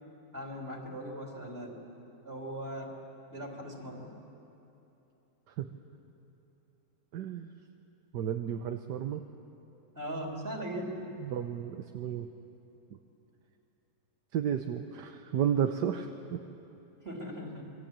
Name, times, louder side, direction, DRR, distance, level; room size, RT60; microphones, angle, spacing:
voice 1, 0.3-1.8 2.2-2.9 3.3-4.1 10.0-11.1 17.0-17.7, equal, 35° right, 0 dB, 3.7 m, -39 dB
voice 2, 7.1-7.5 8.1-9.2 11.2-12.3 12.9-13.0 14.3-16.4, right 9 dB, 75° right, 6 dB, 1.5 m, -32 dB
27.5 x 22.5 x 8.9 m, 3.0 s
omnidirectional pair, 1.8 m